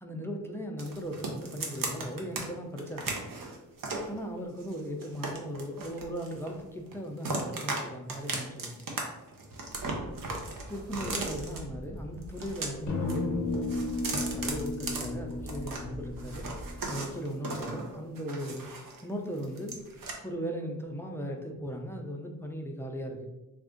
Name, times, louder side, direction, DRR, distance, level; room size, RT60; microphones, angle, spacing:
voice 1, 0.0-3.2 4.1-8.8 10.7-13.7 14.3-16.5 16.9-18.7 19.0-19.8 20.2-23.3, equal, 5° left, 1 dB, 0.4 m, -37 dB
sound 1, 0.8-2.4 2.8-4.1 4.6-6.6 6.9-7.8 8.1-9.0 9.3-11.6 12.2-13.2 13.5-15.8 16.2-19.0 19.3-20.1, right 3 dB, 65° right, 0.8 m, -37 dB
sound 2, 9.7-16.8, equal, 35° right, 1.1 m, -45 dB
sound 3, 12.9-17.0, left 2 dB, 50° left, 0.7 m, -34 dB
3.5 x 2.5 x 3.7 m, 0.97 s
wide cardioid pair, 120°, 36 cm